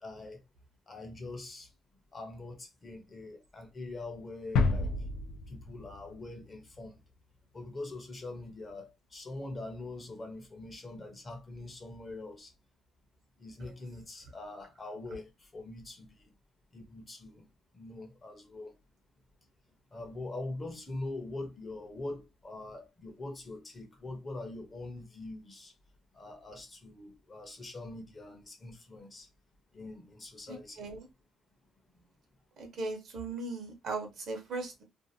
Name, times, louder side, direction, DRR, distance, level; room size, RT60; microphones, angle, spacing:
voice 1, 0.0-0.4 0.9-1.7 2.1-4.9 5.5-6.9 7.5-12.5 13.4-16.3 16.7-17.4 17.7-18.7 19.9-25.7 26.1-29.3 29.7-30.9, left 2 dB, 20° left, 0.7 m, -43 dB
sound 1, 4.6-6.4 6.7-6.8, left 4 dB, 80° left, 0.4 m, -30 dB
voice 2, 30.5-31.0 32.6-34.8, right 3 dB, 50° right, 0.8 m, -38 dB
2.5 x 2.5 x 2.7 m
cardioid pair, 170°, 0 cm